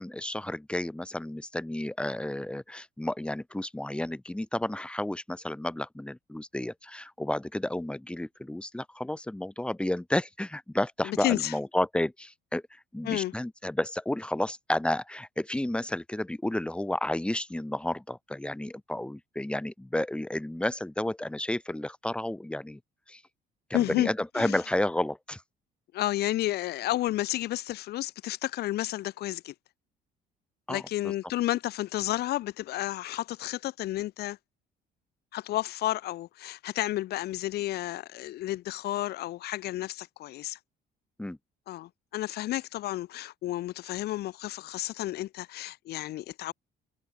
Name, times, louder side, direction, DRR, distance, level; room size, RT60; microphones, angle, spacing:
voice 1, 0.0-22.8 23.1-23.2 23.7-25.4 30.7-30.8 41.2-41.4, left 1 dB, 5° left, 4.5 m, -31 dB
voice 2, 11.0-11.5 13.0-13.3 23.7-24.6 25.9-29.5 30.7-34.4 35.3-40.6 41.7-46.5, left 15 dB, 70° left, 1.5 m, -31 dB
cardioid pair, 110°, 17 cm